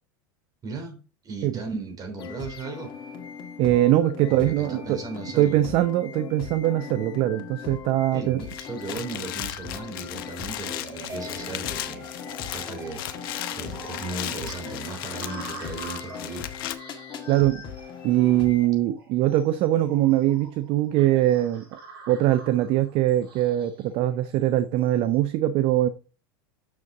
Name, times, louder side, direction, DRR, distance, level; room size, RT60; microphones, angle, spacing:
voice 1, 0.6-2.9 4.3-5.6 8.1-12.1 12.5-16.4, right 4 dB, 30° right, 3.3 m, -36 dB
sound 1, 2.2-18.7, left 7 dB, 40° left, 1.9 m, -39 dB
voice 2, 3.6-5.0 5.4-8.4 17.3-17.6 18.0-21.6 22.1-25.9, right 14 dB, 50° right, 0.6 m, -22 dB
sound 2, 8.4-16.7, left 13 dB, 70° left, 0.9 m, -36 dB
sound 3, 10.8-25.1, right 2 dB, 80° right, 3.5 m, -45 dB
6.8 x 6.7 x 3.7 m
hypercardioid pair, 105°, 12 cm